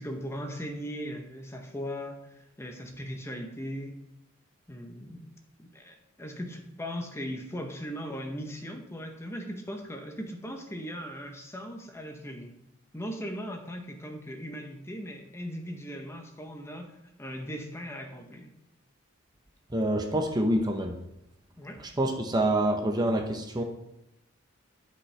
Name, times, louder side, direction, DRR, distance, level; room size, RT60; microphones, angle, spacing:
voice 1, 0.0-3.9 4.7-5.3 5.6-12.5 12.9-18.6 21.6-21.8, equal, 15° left, 4 dB, 0.8 m, -38 dB
voice 2, 19.7-21.0 22.0-23.6, right 1 dB, 20° right, 4 dB, 0.7 m, -26 dB
12.0 x 5.4 x 3.3 m, 0.85 s
head